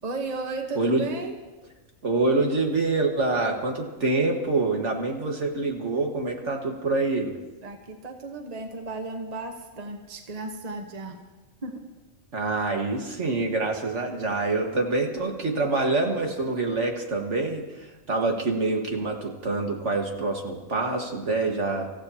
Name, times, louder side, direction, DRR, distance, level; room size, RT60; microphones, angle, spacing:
voice 1, 0.0-1.3 7.6-11.2 11.6-11.8, right 3 dB, 30° right, 3 dB, 1.1 m, -34 dB
voice 2, 0.8-1.1 2.0-7.4 12.3-21.9, right 3 dB, 60° right, 2 dB, 2.0 m, -26 dB
26.0 x 14.5 x 2.9 m, 1.2 s
omnidirectional pair, 1.4 m